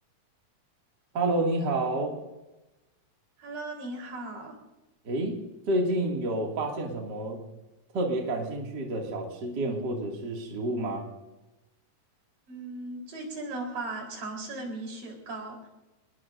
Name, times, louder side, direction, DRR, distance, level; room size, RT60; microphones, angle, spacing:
voice 1, 1.1-2.1 5.0-5.4 5.7-7.4 7.9-11.1, right 2 dB, 35° right, 0 dB, 2.4 m, -29 dB
voice 2, 3.4-4.6 12.5-15.7, right 2 dB, 70° right, 1 dB, 5.6 m, -37 dB
26.0 x 21.0 x 2.6 m, 1.0 s
omnidirectional pair, 4.1 m